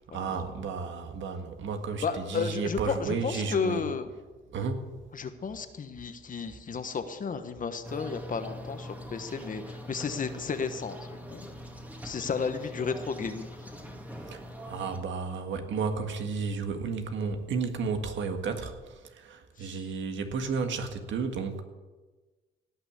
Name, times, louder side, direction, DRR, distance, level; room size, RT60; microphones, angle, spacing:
voice 1, 0.1-3.8 4.5-4.9 14.3-21.6, right 5 dB, 70° right, 6 dB, 1.7 m, -32 dB
voice 2, 2.0-4.1 5.1-11.5 12.0-13.5 19.6-19.8, left 5 dB, 40° left, 9 dB, 1.2 m, -33 dB
sound 1, 7.8-15.0, equal, 10° right, 2.2 m, -42 dB
17.5 x 6.0 x 8.3 m, 1.3 s
cardioid pair, 90°, 20 cm